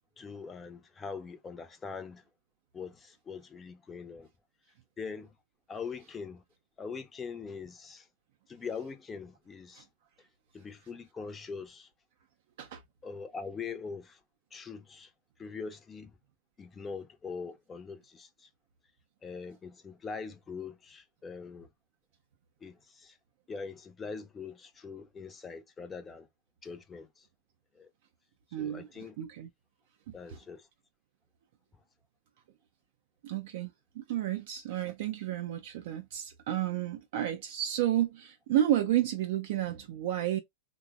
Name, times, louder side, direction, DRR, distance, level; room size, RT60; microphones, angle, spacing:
voice 1, 0.2-2.2 2.7-4.3 5.0-5.3 5.7-6.4 6.8-8.1 8.5-9.9 10.5-11.9 13.0-14.2 14.5-15.1 15.4-16.2 16.6-18.5 19.2-21.7 22.6-23.2 23.5-26.3 26.6-27.3 27.7-27.9 28.6-29.2 30.1-30.7, left 5 dB, 20° left, 0.5 m, -42 dB
voice 2, 28.5-29.5 30.1-30.4 33.2-40.4, right 12 dB, 55° right, 0.3 m, -31 dB
3.1 x 2.0 x 2.3 m
figure-of-eight pair, 90°, 0 cm